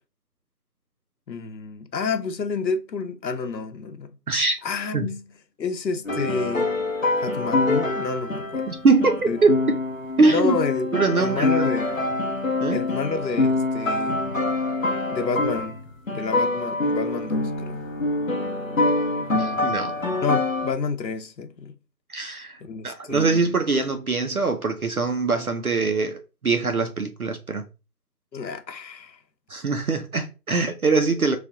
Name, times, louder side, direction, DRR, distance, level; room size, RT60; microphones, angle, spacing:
voice 1, 1.3-4.2 4.6-5.3 5.6-6.8 7.2-8.7 9.3-9.4 10.3-10.9 11.2-12.0 12.7-14.3 15.0-17.8 20.2-21.7 22.6-23.5 28.3-29.2, left 4 dB, 85° left, 0.8 m, -29 dB
voice 2, 4.3-4.6 4.9-5.1 8.7-9.6 10.2-10.6 10.9-11.6 12.6-12.8 19.3-20.0 22.1-27.6 29.5-31.4, right 3 dB, 60° right, 0.5 m, -23 dB
sound 1, 6.1-15.8 16.1-20.7, left 2 dB, 50° left, 0.8 m, -25 dB
3.2 x 2.3 x 3.7 m
figure-of-eight pair, 180°, 50 cm